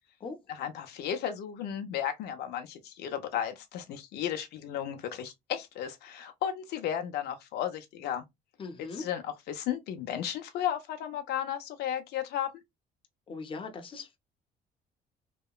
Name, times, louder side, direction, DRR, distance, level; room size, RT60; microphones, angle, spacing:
voice 1, 0.5-8.2 8.8-12.5, left 10 dB, 75° left, 0.5 m, -34 dB
voice 2, 8.6-9.0 13.3-14.2, left 4 dB, 30° left, 0.6 m, -39 dB
2.9 x 2.1 x 2.3 m
cardioid pair, 110°, 17 cm